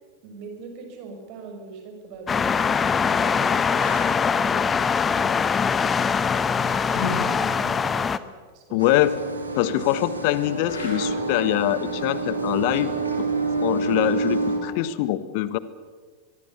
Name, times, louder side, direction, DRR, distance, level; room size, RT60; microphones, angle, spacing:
voice 1, 0.2-6.1 6.4-8.3 8.5-9.1 9.7-9.9, right 3 dB, 40° right, 4 dB, 6.1 m, -42 dB
sound 1, 2.1-2.3 3.0-3.1 3.7-4.2 6.8-7.4 10.6-11.3 14.2-14.4, left 3 dB, 70° left, 6.7 m, -34 dB
sound 2, 2.3-8.2, left 6 dB, 20° left, 0.9 m, -22 dB
voice 2, 8.7-9.2 9.5-12.9 13.6-15.6, left 14 dB, 45° left, 16 dB, 1.3 m, -23 dB
sound 3, 8.8-14.6, right 3 dB, 80° right, 3.5 m, -27 dB
23.5 x 23.0 x 6.8 m, 1.5 s
figure-of-eight pair, 90°, 0 cm